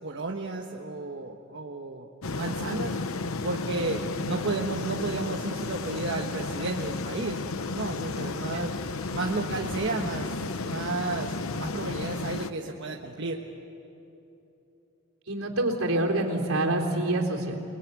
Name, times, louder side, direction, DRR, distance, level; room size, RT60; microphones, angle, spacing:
voice 1, 0.0-3.0 3.4-7.4 7.7-8.8 9.1-10.3 10.6-13.4, right 3 dB, 60° right, 1 dB, 1.4 m, -33 dB
sound 1, 2.2-12.5, left 3 dB, 75° left, 0.9 m, -33 dB
voice 2, 15.3-17.6, right 1 dB, 80° right, 0 dB, 3.8 m, -26 dB
28.5 x 21.0 x 9.6 m, 2.9 s
head